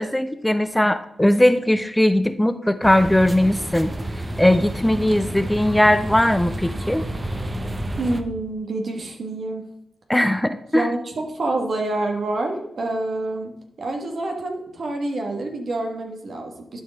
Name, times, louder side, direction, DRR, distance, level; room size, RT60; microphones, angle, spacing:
voice 1, 0.0-3.9 4.4-7.0 10.1-10.9, left 1 dB, 10° left, 11 dB, 0.5 m, -19 dB
sound 1, 2.8-8.2, right 1 dB, 30° right, 0.7 m, -30 dB
voice 2, 8.0-9.6 10.7-13.5 13.8-16.8, right 2 dB, 65° right, 3 dB, 1.4 m, -27 dB
12.0 x 4.6 x 3.4 m, 0.80 s
cardioid pair, 55°, 0 cm